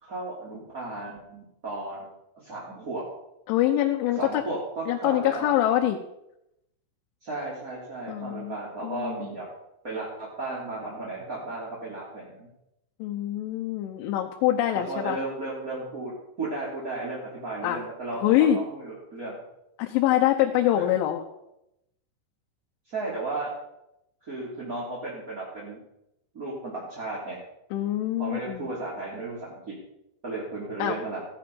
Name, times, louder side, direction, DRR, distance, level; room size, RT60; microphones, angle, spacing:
voice 1, 0.0-2.1 2.3-3.0 4.1-5.5 7.2-9.5 9.8-12.5 14.7-16.1 16.4-19.4 20.7-20.9 22.9-23.5 24.2-25.8 26.3-27.4 28.2-29.8 30.2-31.3, right 2 dB, 25° right, -6 dB, 2.5 m, -34 dB
voice 2, 3.5-4.4 4.9-6.0 8.1-8.6 8.8-9.2 13.0-15.2 17.6-17.8 18.2-18.6 19.8-21.2 27.7-28.7 30.8-31.0, left 12 dB, 80° left, 3 dB, 3.3 m, -24 dB
15.5 x 11.5 x 5.4 m, 0.84 s
omnidirectional pair, 5.5 m